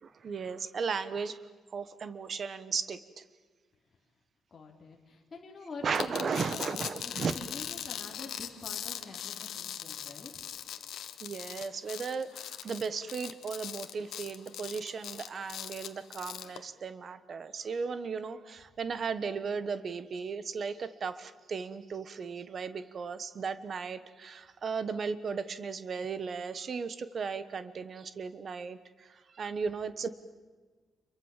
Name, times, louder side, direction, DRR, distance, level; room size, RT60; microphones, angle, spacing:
voice 1, 0.0-1.4 1.7-3.2 5.8-7.3 11.2-30.1, right 5 dB, 35° right, 13 dB, 1.2 m, -36 dB
voice 2, 4.5-10.3, left 4 dB, 25° left, -1 dB, 3.4 m, -46 dB
sound 1, 5.9-16.6, left 10 dB, 70° left, 1.6 m, -40 dB
28.5 x 23.0 x 7.4 m, 1.4 s
cardioid pair, 180°, 0 cm